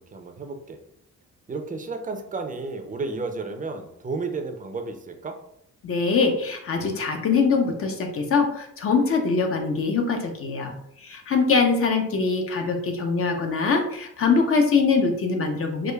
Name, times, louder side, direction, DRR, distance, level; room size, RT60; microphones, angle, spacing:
voice 1, 0.1-0.8 1.5-5.3, right 3 dB, 25° right, 5 dB, 0.5 m, -32 dB
voice 2, 5.8-10.7 11.0-15.9, left 4 dB, 45° left, 4 dB, 0.8 m, -23 dB
4.8 x 2.4 x 2.3 m, 0.74 s
cardioid pair, 90°, 30 cm